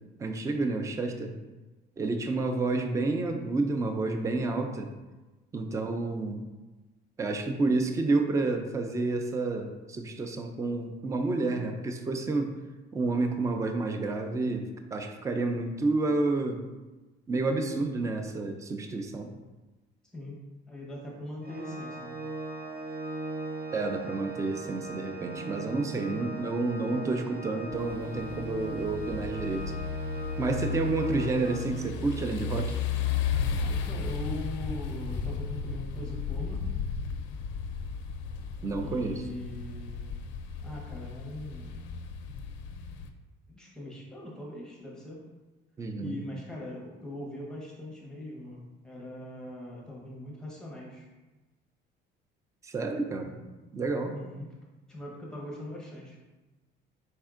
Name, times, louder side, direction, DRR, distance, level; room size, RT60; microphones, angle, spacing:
voice 1, 0.2-1.4 2.0-4.9 5.5-6.5 7.2-12.5 12.9-16.6 17.3-19.3 23.7-29.7 30.4-32.8 38.6-39.2 45.8-46.2 52.6-53.3 53.7-54.2, right 3 dB, 15° right, 5 dB, 0.3 m, -30 dB
voice 2, 20.1-22.2 33.6-36.7 38.8-40.2 40.6-41.8 43.5-45.2 46.0-51.1 53.3-53.5 54.1-54.5 54.9-56.2, left 1 dB, 5° left, -4 dB, 0.9 m, -41 dB
Organ, 21.4-32.2, right 3 dB, 55° right, 0.7 m, -39 dB
sound 1, 27.7-43.1, left 6 dB, 80° left, 0.4 m, -34 dB
4.3 x 4.3 x 2.4 m, 1.2 s
cardioid pair, 150°, 19 cm